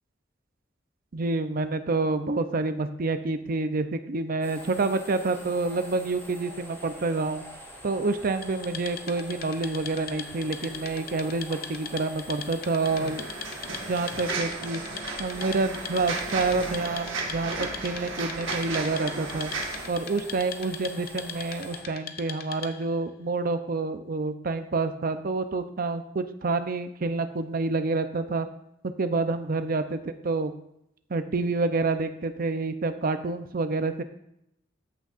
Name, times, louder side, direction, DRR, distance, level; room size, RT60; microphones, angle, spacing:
voice 1, 1.1-7.4 7.8-13.3 13.9-14.8 15.2-19.5 19.9-28.5 29.0-30.5 31.1-34.0, right 3 dB, 50° right, 9 dB, 0.6 m, -28 dB
sound 1, 4.4-21.8, equal, 15° left, 2.9 m, -45 dB
Wood, 8.4-23.0, left 7 dB, 50° left, 0.6 m, -41 dB
sound 2, 12.8-19.9, right 3 dB, 90° right, 1.4 m, -34 dB
13.5 x 6.3 x 2.5 m, 0.79 s
head